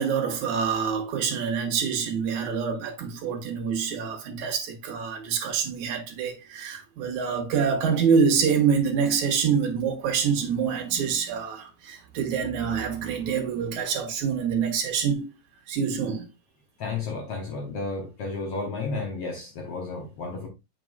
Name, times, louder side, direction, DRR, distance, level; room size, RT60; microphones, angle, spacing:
voice 1, 0.0-15.3 15.7-16.3, right 6 dB, 65° right, 2.5 m, -26 dB
voice 2, 16.8-20.5, left 3 dB, 60° left, 1.7 m, -32 dB
7.5 x 6.0 x 2.4 m
omnidirectional pair, 3.9 m